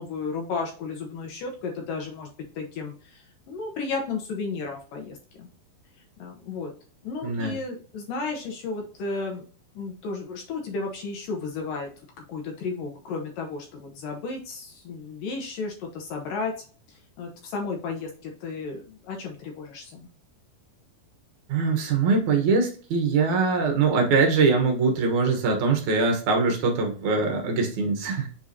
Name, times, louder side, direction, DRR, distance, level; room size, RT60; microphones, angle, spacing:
voice 1, 0.0-2.3 2.6-5.5 6.2-6.7 7.0-9.5 9.7-11.9 12.2-16.5 16.9-20.1, left 4 dB, 70° left, 2 dB, 2.3 m, -33 dB
voice 2, 7.2-7.5 21.5-28.3, right 4 dB, 60° right, 2 dB, 2.2 m, -22 dB
7.4 x 4.5 x 2.8 m, 0.40 s
omnidirectional pair, 4.7 m